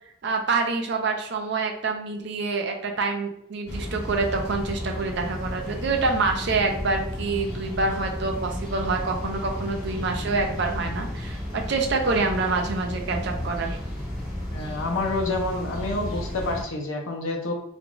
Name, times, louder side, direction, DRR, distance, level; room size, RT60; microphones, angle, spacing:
voice 1, 0.2-13.8, right 3 dB, 55° right, 3 dB, 0.4 m, -26 dB
sound 1, 3.7-16.6, left 1 dB, ahead, 1.0 m, -33 dB
voice 2, 14.5-17.5, left 2 dB, 75° left, 2 dB, 0.6 m, -28 dB
2.4 x 2.2 x 2.9 m, 0.74 s
head